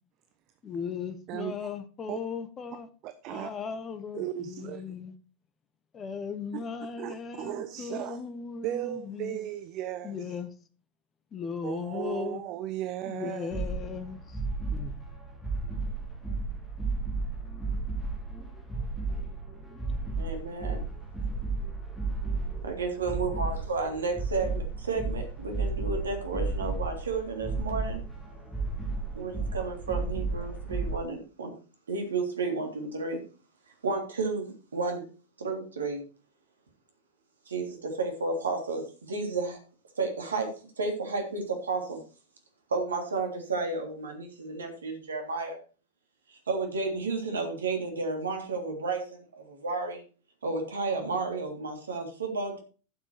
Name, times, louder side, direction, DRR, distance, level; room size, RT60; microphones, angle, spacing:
voice 1, 0.6-2.9 3.3-5.1 5.9-9.4 10.0-10.5 11.3-12.4 13.1-14.4 14.7-14.9, left 6 dB, 25° left, 1.2 m, -37 dB
voice 2, 1.3-1.7 2.1-2.2 3.0-3.5 4.1-4.8 6.5-6.6 7.0-8.2 8.6-10.1 11.6-13.5, right 12 dB, 40° right, 0.8 m, -36 dB
sound 1, 13.5-31.0, right 3 dB, 5° left, 3.3 m, -33 dB
voice 3, 20.2-20.8 22.6-28.0 29.1-31.5 31.9-33.2 33.8-35.0 35.4-36.0 37.5-39.6 40.0-42.0 42.7-45.6 46.3-50.0 50.4-52.6, right 3 dB, 70° right, 3.2 m, -32 dB
11.5 x 7.4 x 4.6 m
figure-of-eight pair, 90°, 0 cm